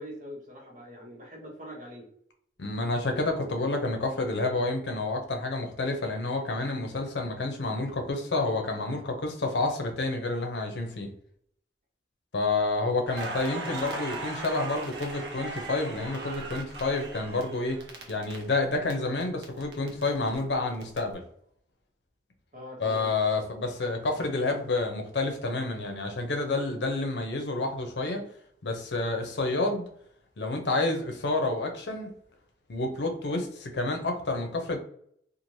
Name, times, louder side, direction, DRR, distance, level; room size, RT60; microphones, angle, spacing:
voice 1, 0.0-2.1 22.5-23.1, equal, 45° right, -1 dB, 0.9 m, -43 dB
voice 2, 2.6-11.1 12.3-17.8 18.1-21.2 22.8-28.2 28.6-29.9 30.4-32.1 32.7-34.8, left 2 dB, 80° left, 4 dB, 0.6 m, -29 dB
Crackle, 13.1-18.9 19.2-21.0, right 2 dB, 80° right, 0.7 m, -38 dB
3.1 x 2.4 x 2.6 m, 0.67 s
head